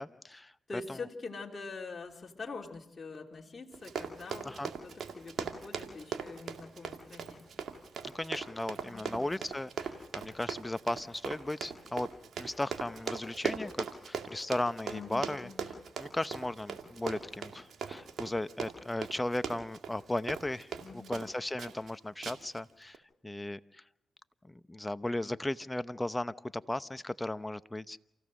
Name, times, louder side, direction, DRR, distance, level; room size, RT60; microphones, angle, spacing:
voice 1, 0.0-0.5 0.9-1.0 4.4-4.7 8.0-12.1 12.4-15.5 16.0-23.0 23.2-23.8 24.5-28.0, left 1 dB, 15° left, 13 dB, 0.8 m, -36 dB
voice 2, 0.7-7.5 8.9-9.3 14.8-15.7 20.8-21.2, left 4 dB, 35° left, 0 dB, 3.0 m, -44 dB
Run, 3.7-21.3 21.6-21.9 22.2-22.6 22.9-23.0, right 6 dB, 70° right, 2.3 m, -39 dB
28.0 x 16.0 x 6.4 m, 0.83 s
supercardioid pair, 60°, 0 cm